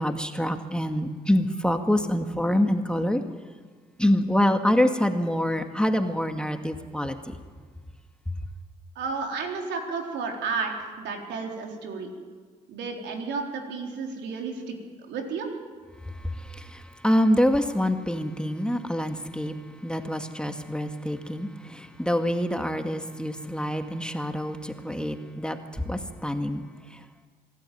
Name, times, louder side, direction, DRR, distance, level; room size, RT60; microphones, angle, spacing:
voice 1, 0.0-3.2 4.0-7.3 16.2-19.5 19.8-26.6, equal, 5° left, 6 dB, 2.1 m, -26 dB
voice 2, 9.0-12.1 12.7-14.7 15.1-15.5, right 4 dB, 75° right, 2 dB, 3.9 m, -32 dB
25.0 x 13.0 x 9.4 m, 1.5 s
hypercardioid pair, 55°, 18 cm